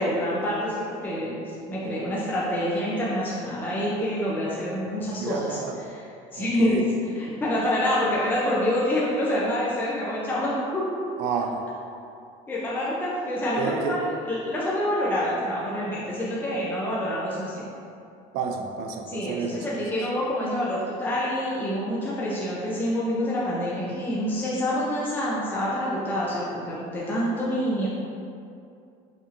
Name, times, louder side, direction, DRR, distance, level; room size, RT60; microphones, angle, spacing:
voice 1, 0.0-6.8 7.1-10.9 12.5-17.7 19.1-27.9, left 1 dB, 10° left, -7 dB, 0.5 m, -27 dB
voice 2, 5.2-5.8 6.4-6.8 11.2-11.6 13.6-14.0 18.3-19.6, right 5 dB, 75° right, 3 dB, 0.4 m, -30 dB
4.9 x 2.7 x 2.6 m, 2.5 s
cardioid pair, 145°, 16 cm